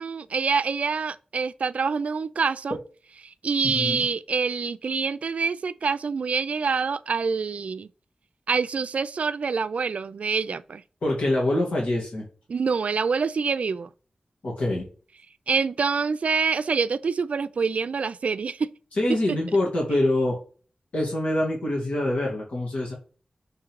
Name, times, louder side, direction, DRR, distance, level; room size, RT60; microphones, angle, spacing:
voice 1, 0.0-2.8 3.2-7.9 8.5-10.8 12.5-13.9 15.5-18.7, right 5 dB, 80° right, 0.4 m, -26 dB
voice 2, 3.6-4.1 11.0-12.3 14.4-14.9 19.0-20.4 20.9-22.9, left 1 dB, 90° left, 2.1 m, -25 dB
6.4 x 3.7 x 4.6 m
wide cardioid pair, 75°, 2 cm